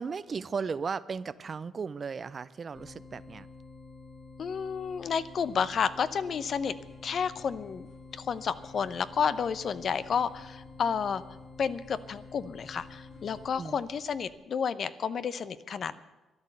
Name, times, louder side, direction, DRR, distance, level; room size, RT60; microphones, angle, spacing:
voice 1, 0.0-3.5 13.5-13.8, right 5 dB, 40° right, 17 dB, 0.5 m, -36 dB
sound 1, 2.7-13.5, left 3 dB, 25° left, 1.4 m, -49 dB
voice 2, 4.4-6.8 7.0-7.9 8.1-11.2 11.6-16.0, left 6 dB, 55° left, 15 dB, 0.7 m, -31 dB
sound 2, 6.3-14.3, left 3 dB, 90° left, 3.7 m, -60 dB
13.0 x 10.5 x 7.9 m, 1.1 s
cardioid pair, 90°, 0 cm